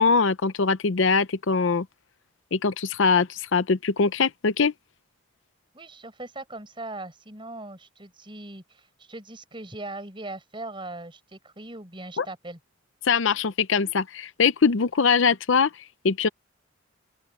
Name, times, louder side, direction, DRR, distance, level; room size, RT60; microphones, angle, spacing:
voice 1, 0.0-1.9 2.5-4.7 12.2-12.3 13.0-15.7 16.0-16.3, left 5 dB, 60° left, 0.6 m, -22 dB
voice 2, 5.7-12.6, right 2 dB, 25° right, 4.8 m, -40 dB
open air
head